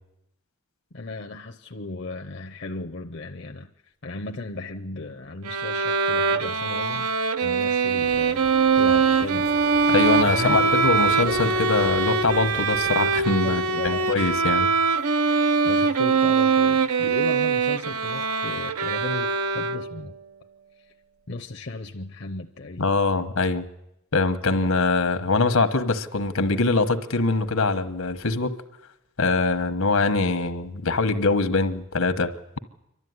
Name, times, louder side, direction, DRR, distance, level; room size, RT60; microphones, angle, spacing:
voice 1, 0.9-3.7 4.0-7.1 7.4-9.5 10.3-11.5 13.4-14.1 15.6-20.1 21.3-22.9, left 3 dB, 50° left, 3 dB, 0.7 m, -35 dB
Bowed string instrument, 5.4-20.1, right 5 dB, 90° right, 0.8 m, -22 dB
sound 1, 8.0-13.1, right 1 dB, 45° right, 0.8 m, -35 dB
voice 2, 9.9-14.7 22.8-23.6 24.1-28.6 29.2-32.3, left 3 dB, 75° left, 9 dB, 1.3 m, -23 dB
28.5 x 12.5 x 9.6 m, 0.87 s
head